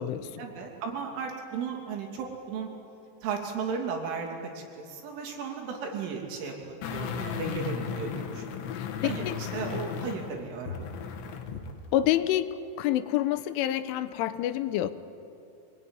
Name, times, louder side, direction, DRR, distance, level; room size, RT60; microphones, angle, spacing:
voice 1, 0.0-2.7 3.2-4.3 4.6-8.6 9.0-10.8, right 5 dB, 85° right, 2 dB, 5.4 m, -35 dB
sound 1, 6.8-11.7 12.0-12.1, left 7 dB, 70° left, 3.8 m, -35 dB
voice 2, 8.7-9.4 11.9-12.5 12.8-14.9, left 13 dB, 90° left, 12 dB, 3.4 m, -27 dB
26.0 x 19.5 x 9.7 m, 2.6 s
omnidirectional pair, 5.5 m